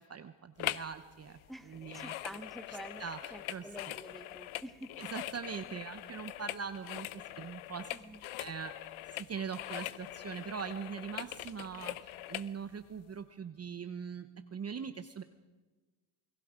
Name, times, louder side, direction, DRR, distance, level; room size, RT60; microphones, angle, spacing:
voice 1, 0.0-1.4 1.6-2.1 2.7-3.7 5.0-7.9 8.4-15.2, right 6 dB, 30° right, 9 dB, 0.9 m, -42 dB
sound 1, 0.6-1.0 1.2-12.5 13.0-13.1, left 15 dB, 70° left, 0.9 m, -42 dB
voice 2, 1.5-3.0 3.3-4.9 7.9-8.2, right 1 dB, ahead, 7 dB, 1.3 m, -48 dB
28.0 x 19.5 x 5.1 m, 1.2 s
cardioid pair, 115°, 50 cm